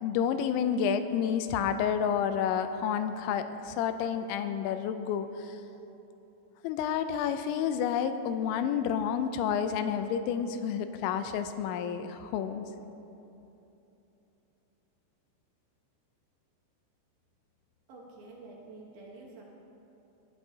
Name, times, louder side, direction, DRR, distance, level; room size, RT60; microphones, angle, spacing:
voice 1, 0.0-5.6 6.6-12.7, left 8 dB, 85° left, 9 dB, 2.9 m, -30 dB
voice 2, 17.9-19.4, right 2 dB, 65° right, -3 dB, 2.5 m, -48 dB
20.0 x 11.5 x 2.8 m, 2.9 s
omnidirectional pair, 5.3 m